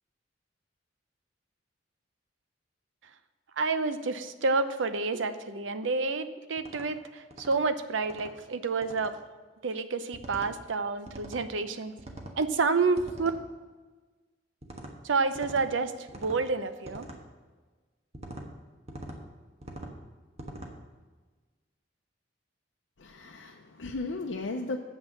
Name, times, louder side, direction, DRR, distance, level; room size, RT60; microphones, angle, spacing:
voice 1, 3.6-9.1 9.6-11.9 12.4-13.3 15.0-17.1, right 4 dB, 80° right, 11 dB, 0.7 m, -29 dB
sound 1, 6.6-6.9 7.3-7.6 8.0-8.3 8.8-9.1 10.1-10.5 11.1-11.4 12.0-12.4 13.0-13.4 14.6-14.9 15.3-15.7 16.1-16.4 16.8-17.2 18.1-18.5 18.9-19.2 19.6-19.9 20.4-20.7, right 1 dB, 35° right, 1.2 m, -43 dB
voice 2, 23.0-24.8, left 3 dB, 75° left, 1 dB, 0.6 m, -35 dB
7.8 x 6.3 x 7.7 m, 1.3 s
head